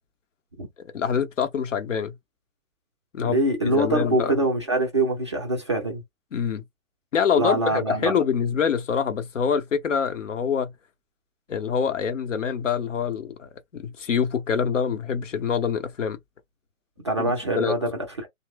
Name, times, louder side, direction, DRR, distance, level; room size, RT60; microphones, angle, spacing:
voice 1, 0.9-2.1 3.1-3.4 3.7-4.4 6.3-6.6 7.1-10.7 11.5-16.2 17.2-17.7, left 7 dB, 60° left, 0.8 m, -25 dB
voice 2, 3.2-6.0 7.4-8.2 17.0-17.9, right 1 dB, 20° right, 0.4 m, -24 dB
2.9 x 2.0 x 3.4 m
figure-of-eight pair, 125°, 42 cm